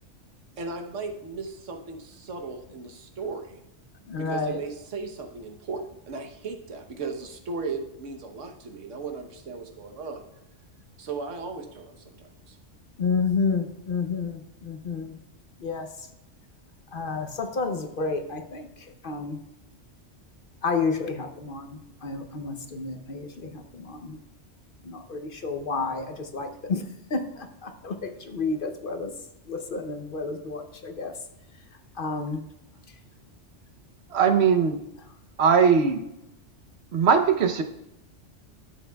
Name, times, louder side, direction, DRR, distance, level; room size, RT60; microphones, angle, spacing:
voice 1, 0.6-3.6 4.2-10.2 11.0-12.6, right 4 dB, 85° right, 5 dB, 1.3 m, -36 dB
voice 2, 4.1-4.6 13.0-15.2 15.6-15.9 16.9-19.4 20.6-24.2 24.8-26.8 27.1-29.1 29.5-31.1 32.0-32.4, left 4 dB, 50° left, 6 dB, 0.8 m, -30 dB
voice 3, 34.1-34.8 35.4-36.0 36.9-37.6, right 6 dB, 65° right, 7 dB, 1.0 m, -20 dB
12.5 x 7.9 x 2.3 m, 0.86 s
omnidirectional pair, 1.2 m